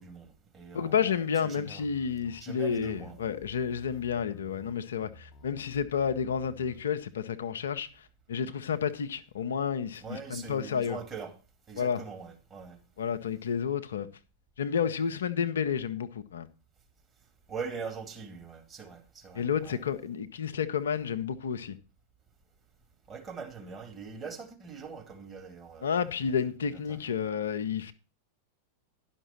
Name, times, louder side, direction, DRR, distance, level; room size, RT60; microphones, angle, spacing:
voice 1, 0.0-1.8 2.4-3.2 10.0-11.4 11.7-12.8 17.5-19.8 23.1-25.9 26.7-27.1, right 5 dB, 20° right, 2.3 m, -42 dB
voice 2, 0.7-11.0 11.8-12.0 13.0-14.1 14.6-16.5 19.3-21.8 25.8-27.9, left 7 dB, 65° left, 0.6 m, -31 dB
sound 1, 1.8-6.9, left 4 dB, 35° left, 0.9 m, -53 dB
11.0 x 5.9 x 5.8 m
figure-of-eight pair, 90°, 0 cm